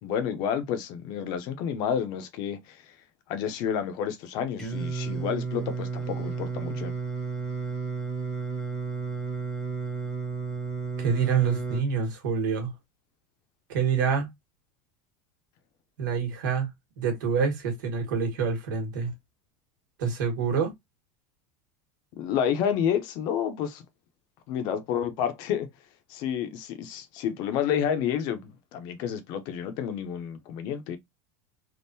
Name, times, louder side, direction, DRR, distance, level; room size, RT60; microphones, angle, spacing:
voice 1, 0.0-2.9 3.3-6.9 22.1-23.8 24.5-25.7 26.1-31.0, left 8 dB, 45° left, 0.6 m, -30 dB
Singing, 4.6-11.8, right 4 dB, 5° left, 0.8 m, -32 dB
voice 2, 11.0-12.7 13.7-14.3 16.0-16.7 17.0-19.1 20.0-20.7, right 6 dB, 90° right, 1.5 m, -26 dB
3.6 x 2.4 x 2.6 m
supercardioid pair, 170°, 10 cm